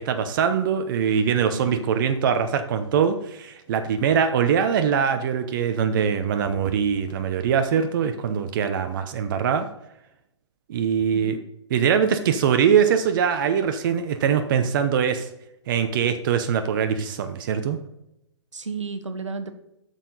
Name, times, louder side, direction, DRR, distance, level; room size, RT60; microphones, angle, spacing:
voice 1, 0.0-9.7 10.7-11.4 11.7-15.3 15.7-17.8, right 7 dB, 45° right, 8 dB, 0.7 m, -22 dB
voice 2, 1.5-1.8 11.1-11.4 18.5-19.5, right 4 dB, 80° right, 8 dB, 1.1 m, -33 dB
9.0 x 6.6 x 3.9 m, 0.85 s
figure-of-eight pair, 130°, 15 cm